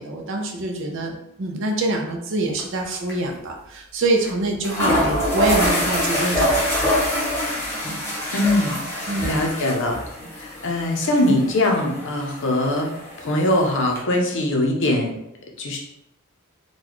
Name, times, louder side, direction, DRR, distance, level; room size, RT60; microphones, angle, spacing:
voice 1, 0.0-7.0 9.1-9.3, right 2 dB, 60° right, 3 dB, 0.6 m, -25 dB
sound 1, 2.6-2.8 3.1-3.2 4.2-4.3 4.6-14.0, equal, 10° left, 0.8 m, -25 dB
voice 2, 8.3-8.8 9.2-10.0 10.4-12.9 13.2-15.1 15.6-15.8, left 1 dB, 60° left, 1 dB, 0.7 m, -21 dB
4.0 x 2.3 x 3.0 m, 0.82 s
head